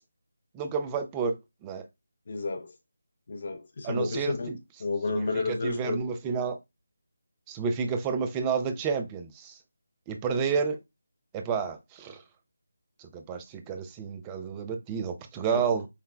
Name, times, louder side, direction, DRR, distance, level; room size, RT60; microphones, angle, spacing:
voice 1, 0.5-1.4 1.6-1.8 3.8-4.6 5.1-6.6 7.5-9.6 10.1-10.8 11.3-12.2 13.0-15.9, right 6 dB, 15° right, 0.3 m, -30 dB
voice 2, 2.3-2.7 3.3-4.5 4.8-6.1 15.5-15.6, left 3 dB, 45° left, 0.6 m, -31 dB
5.5 x 2.1 x 2.2 m
figure-of-eight pair, 160°, 0 cm